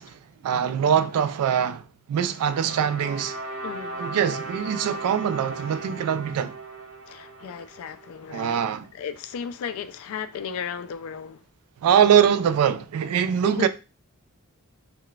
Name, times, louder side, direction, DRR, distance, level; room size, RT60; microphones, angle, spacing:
voice 1, 0.0-3.4 4.0-6.6 8.3-8.8 11.8-13.7, right 8 dB, 80° right, 0.3 m, -23 dB
sound 1, 2.3-8.5, right 2 dB, 60° right, 1.1 m, -37 dB
voice 2, 3.6-4.1 7.1-8.6 8.9-11.4 13.4-13.7, left 7 dB, 70° left, 0.3 m, -35 dB
3.8 x 2.2 x 2.3 m
head